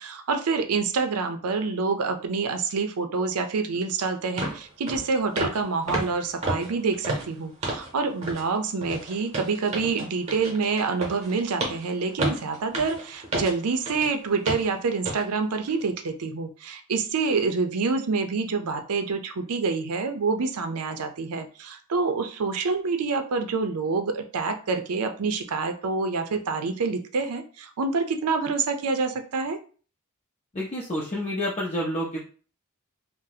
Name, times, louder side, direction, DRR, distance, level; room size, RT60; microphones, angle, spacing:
voice 1, 0.0-29.6, right 4 dB, 90° right, 7 dB, 0.5 m, -27 dB
sound 1, 3.7-3.8 4.4-4.6 4.9-5.1 5.4-5.6 5.9-7.9 8.2-8.5 8.8-14.1 14.5-14.7 15.0-15.2 15.7-15.8, right 2 dB, 30° right, 0.8 m, -31 dB
voice 2, 30.5-32.2, left 1 dB, 30° left, -4 dB, 0.5 m, -29 dB
2.7 x 2.1 x 3.9 m, 0.40 s
head